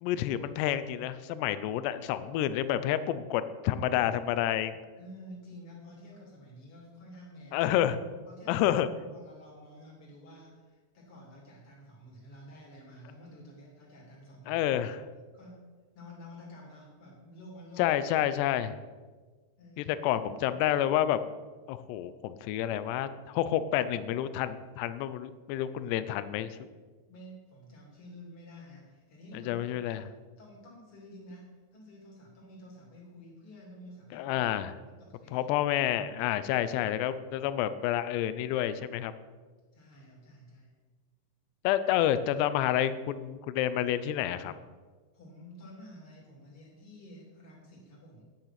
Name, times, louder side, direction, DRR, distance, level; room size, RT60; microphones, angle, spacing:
voice 1, 0.0-4.8 7.5-8.0 8.5-8.9 14.5-15.0 17.8-18.8 19.8-21.2 21.7-26.7 29.5-30.0 34.1-34.7 35.3-39.1 41.6-44.5, left 11 dB, 80° left, 12 dB, 2.6 m, -29 dB
voice 2, 5.0-7.7 8.3-14.6 15.3-15.7 15.9-18.0 19.6-20.2 20.5-20.6 25.8-25.9 27.1-30.1 30.4-34.5 34.9-35.5 39.7-40.8 45.1-48.2, equal, 35° left, -3 dB, 3.0 m, -50 dB
9.5 x 8.9 x 5.8 m, 1.4 s
omnidirectional pair, 5.2 m